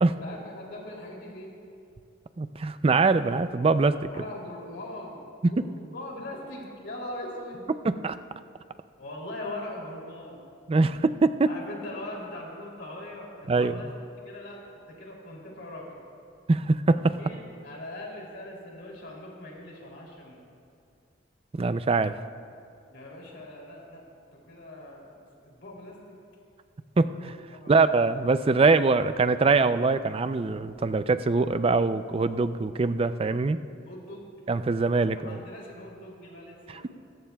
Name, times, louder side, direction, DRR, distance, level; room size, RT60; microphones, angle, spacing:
voice 1, 0.0-1.5 4.0-5.2 5.5-7.7 9.0-10.5 11.5-13.9 14.2-14.6 14.9-15.9 17.2-20.5 22.9-24.0 24.3-26.2 27.5-27.8 33.8-34.3 35.2-36.9, left 1 dB, 65° left, -2 dB, 2.9 m, -41 dB
voice 2, 2.4-4.1 5.4-5.5 7.8-8.2 10.7-11.5 13.5-13.8 16.5-17.2 21.5-22.2 27.0-27.3 27.7-33.6 34.5-35.4, right 3 dB, 30° right, 12 dB, 0.4 m, -23 dB
25.5 x 14.5 x 2.3 m, 2.4 s
head